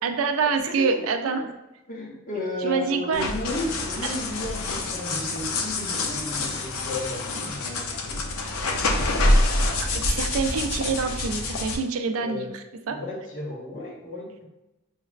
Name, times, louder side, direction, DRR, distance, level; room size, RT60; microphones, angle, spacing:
voice 1, 0.0-1.5 2.6-3.3 9.8-12.5 12.9-13.0, right 5 dB, 85° right, 7 dB, 0.4 m, -26 dB
voice 2, 0.6-1.5 1.9-8.2 12.1-12.5 12.9-14.4, left 1 dB, 40° left, -3 dB, 0.9 m, -34 dB
sound 1, 3.1-11.8, left 2 dB, 90° left, 0.5 m, -26 dB
5.7 x 2.0 x 2.4 m, 0.99 s
head